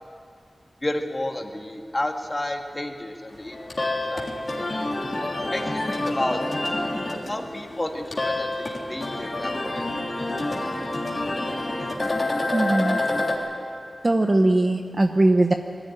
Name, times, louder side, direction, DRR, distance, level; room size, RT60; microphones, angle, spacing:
voice 1, 0.8-3.6 3.8-4.3 5.4-6.4 7.3-9.8, left 1 dB, 25° left, 3 dB, 1.9 m, -31 dB
sound 1, 3.4-13.3, left 2 dB, 40° left, 3.4 m, -28 dB
voice 2, 12.5-13.0 14.0-15.5, right 2 dB, 35° right, 5 dB, 0.9 m, -20 dB
21.5 x 15.0 x 10.0 m, 2.3 s
wide cardioid pair, 95°, 0 cm